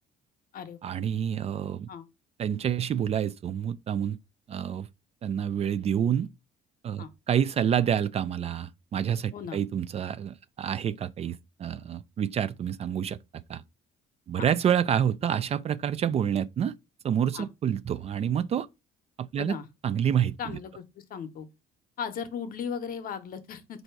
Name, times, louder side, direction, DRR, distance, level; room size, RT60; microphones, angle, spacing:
voice 1, 0.8-1.9 2.4-4.2 4.5-4.9 5.2-6.3 6.8-13.2 13.5-13.6 14.3-16.7 17.0-18.7 19.2-19.6 19.8-20.4, right 9 dB, 40° right, 0.4 m, -28 dB
voice 2, 20.4-20.8 21.1-21.5 22.0-23.8, left 7 dB, 55° left, 0.8 m, -36 dB
4.4 x 2.7 x 4.5 m
cardioid pair, 110°, 17 cm